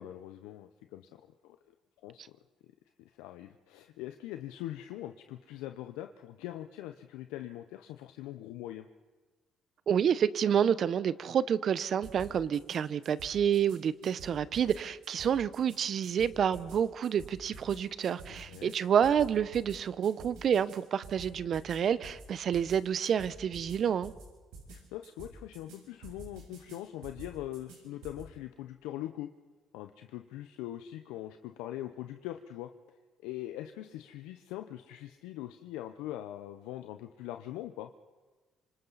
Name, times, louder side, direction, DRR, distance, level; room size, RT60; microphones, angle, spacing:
voice 1, 0.0-1.7 2.0-2.4 3.0-8.9 18.3-18.7 24.7-29.3 29.7-37.9, left 13 dB, 85° left, 0.7 m, -42 dB
voice 2, 9.9-24.1, right 8 dB, 55° right, 0.8 m, -29 dB
sound 1, 12.0-12.8 13.0-13.8 14.0-14.8 15.0-16.8 17.0-17.8 18.0-18.8 19.0-19.8 20.0-20.8 21.0-21.8 22.0-22.2 22.5-22.8 23.0-23.8 24.0-24.2 24.5-24.8 25.0-25.8 26.0-26.8 27.0-27.8 28.0-28.2, right 4 dB, 85° right, 7.9 m, -48 dB
27.0 x 25.5 x 4.1 m
supercardioid pair, 70°, 0 cm